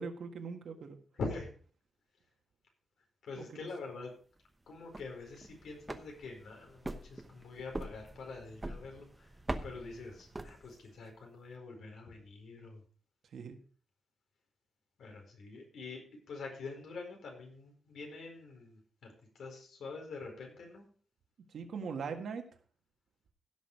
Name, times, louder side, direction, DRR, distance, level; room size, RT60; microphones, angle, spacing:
voice 1, 0.0-1.0 3.4-3.7 13.3-13.6 21.5-22.4, right 5 dB, 70° right, 5 dB, 1.7 m, -41 dB
voice 2, 1.2-1.5 3.2-4.1 4.7-9.3 9.6-12.8 15.0-16.0 16.3-19.1 19.4-20.9, left 3 dB, 80° left, 2 dB, 4.7 m, -45 dB
sound 1, 4.7-11.0, right 1 dB, 15° right, 0.9 m, -44 dB
16.5 x 6.3 x 4.9 m, 0.42 s
wide cardioid pair, 155°, 0 cm